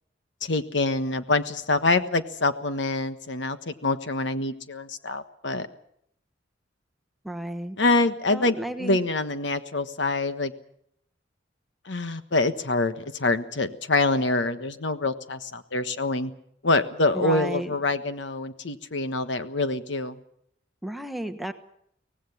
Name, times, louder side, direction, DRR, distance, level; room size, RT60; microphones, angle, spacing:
voice 1, 0.4-5.7 7.8-10.5 11.8-16.3 16.6-20.2, left 2 dB, 70° left, 10 dB, 1.4 m, -25 dB
voice 2, 7.2-7.8 8.3-9.0 17.1-17.7 20.8-21.5, right 1 dB, ahead, 6 dB, 1.2 m, -33 dB
24.0 x 18.0 x 7.2 m, 0.72 s
head